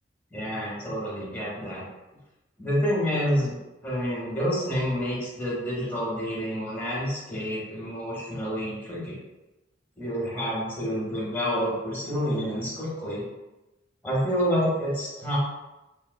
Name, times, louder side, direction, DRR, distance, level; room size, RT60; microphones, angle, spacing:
voice 1, 0.3-1.8 2.6-3.6 3.8-9.2 10.0-13.3 14.0-15.4, equal, 10° left, -6 dB, 0.8 m, -28 dB
2.7 x 2.3 x 2.2 m, 1.0 s
head